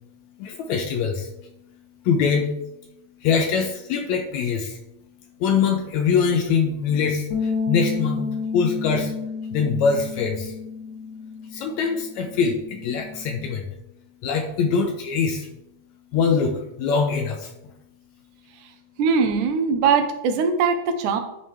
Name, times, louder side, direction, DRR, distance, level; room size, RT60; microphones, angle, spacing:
voice 1, 0.4-1.3 2.1-2.5 3.2-4.8 5.4-9.1 9.5-10.5 11.5-13.7 14.2-15.5 16.1-17.5, left 5 dB, 80° left, 4 dB, 1.7 m, -23 dB
sound 1, 7.3-13.6, left 5 dB, 60° left, 3.0 m, -31 dB
voice 2, 19.0-21.2, right 5 dB, 75° right, 6 dB, 2.1 m, -21 dB
11.0 x 4.7 x 3.3 m, 0.85 s
omnidirectional pair, 3.9 m